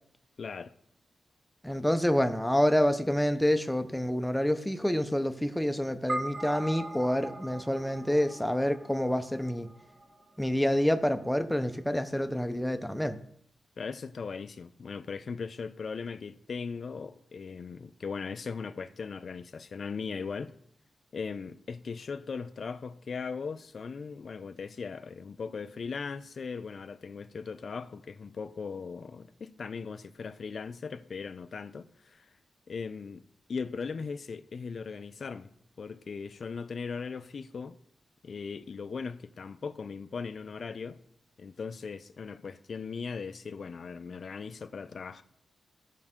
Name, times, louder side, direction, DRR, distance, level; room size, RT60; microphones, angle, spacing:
voice 1, 0.4-0.7 13.8-20.5 21.1-32.3 32.7-33.2 33.5-37.8 38.2-41.0 41.4-45.2, left 5 dB, 45° left, 0.5 m, -38 dB
voice 2, 1.6-9.7 10.4-13.2, equal, 5° left, 0.6 m, -27 dB
sound 1, 6.1-10.7, right 1 dB, 35° right, 0.9 m, -40 dB
15.0 x 5.4 x 3.6 m
wide cardioid pair, 150°, 0 cm